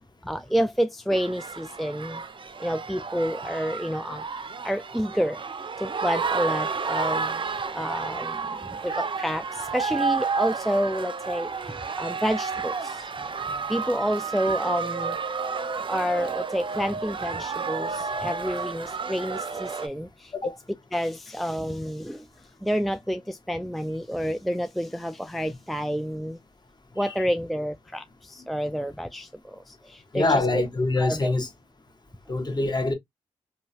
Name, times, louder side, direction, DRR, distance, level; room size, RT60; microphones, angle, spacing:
voice 1, 0.2-2.2 2.6-4.2 4.6-5.4 5.8-7.4 7.7-13.1 13.7-15.2 15.9-20.5 20.9-22.3 22.6-26.4 27.0-30.6 31.0-31.3, equal, ahead, 0.3 m, -29 dB
sound 1, 1.1-19.9, right 5 dB, 40° right, 0.6 m, -31 dB
voice 2, 30.1-31.5 32.3-32.9, left 2 dB, 35° left, 1.1 m, -24 dB
2.9 x 2.3 x 2.7 m
cardioid pair, 50°, 12 cm